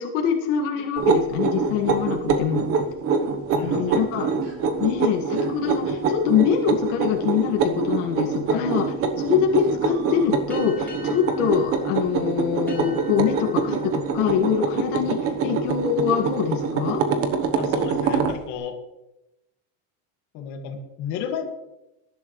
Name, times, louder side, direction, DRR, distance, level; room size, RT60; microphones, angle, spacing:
voice 1, 0.0-2.6 3.6-4.3 4.8-8.8 9.2-17.0, left 8 dB, 65° left, 0 dB, 2.0 m, -24 dB
sound 1, 1.0-18.4, right 5 dB, 35° right, 1.1 m, -25 dB
voice 2, 3.5-4.0 8.5-8.7 17.6-18.8 20.3-21.4, left 8 dB, 50° left, 2 dB, 2.2 m, -33 dB
sound 2, 4.4-4.7 5.3-5.6 7.3-7.4 8.3-8.6 9.2-9.3 9.6-10.7 11.0-11.2 11.5-11.6, right 4 dB, 75° right, 5.3 m, -49 dB
sound 3, 10.5-15.6, left 1 dB, 5° left, 4.4 m, -46 dB
19.5 x 11.0 x 3.2 m, 0.95 s
cardioid pair, 160°, 39 cm